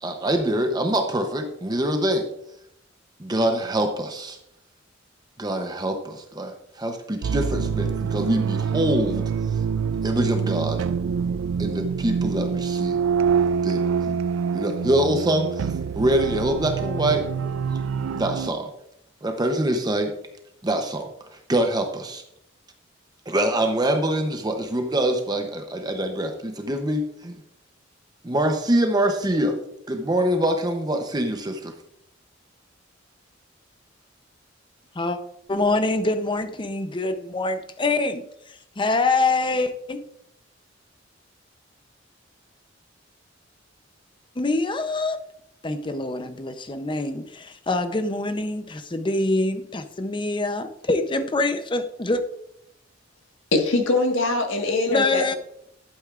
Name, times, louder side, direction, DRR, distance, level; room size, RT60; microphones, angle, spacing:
voice 1, 0.0-2.3 3.2-4.4 5.4-9.6 10.0-10.8 11.6-13.0 13.6-14.2 14.5-17.3 18.1-18.7 19.2-20.1 20.6-22.2 23.3-27.4 28.2-29.6 29.9-31.7, right 1 dB, 20° right, 5 dB, 0.7 m, -24 dB
sound 1, 7.2-18.5, right 6 dB, 80° right, 0.3 m, -26 dB
voice 2, 35.5-38.2 38.8-40.0 44.4-45.2 45.6-52.2 54.9-55.3, left 2 dB, 25° left, 9 dB, 0.7 m, -25 dB
voice 3, 53.5-55.2, left 2 dB, 85° left, 3 dB, 1.5 m, -22 dB
11.5 x 8.8 x 2.5 m, 0.75 s
head